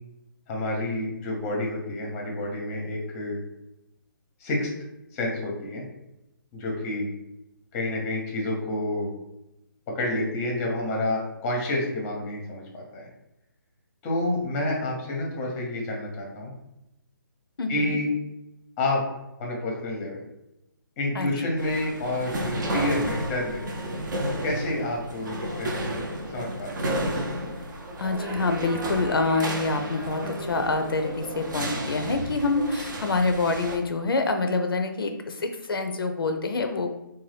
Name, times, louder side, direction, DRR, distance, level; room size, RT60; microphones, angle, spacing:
voice 1, 0.5-3.4 4.4-4.7 5.1-5.8 6.5-7.1 7.7-9.1 9.9-13.1 14.0-16.5 17.7-18.1 18.8-19.0 19.4-20.2 21.0-23.7 24.4-25.7 26.3-27.0, left 1 dB, 20° left, -1 dB, 0.6 m, -29 dB
voice 2, 17.6-18.0 21.2-21.3 28.0-36.9, left 3 dB, 85° left, 6 dB, 0.4 m, -26 dB
sound 1, 21.6-33.8, right 1 dB, 60° right, 0.6 m, -32 dB
2.6 x 2.2 x 3.2 m, 0.90 s
hypercardioid pair, 150°, 12 cm